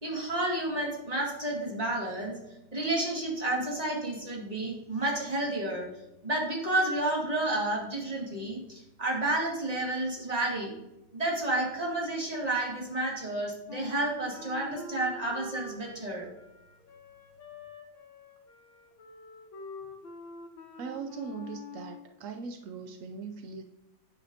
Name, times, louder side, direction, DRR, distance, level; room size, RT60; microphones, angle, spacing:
voice 1, 0.0-2.4 2.7-5.9 6.2-10.7 11.1-16.3, right 1 dB, 20° right, -1 dB, 1.9 m, -31 dB
Wind instrument woodwind instrument, 13.7-22.1, left 3 dB, 85° left, 2.0 m, -46 dB
voice 2, 20.8-23.6, right 5 dB, 80° right, 5 dB, 0.7 m, -40 dB
9.0 x 7.2 x 2.8 m, 0.97 s
omnidirectional pair, 2.0 m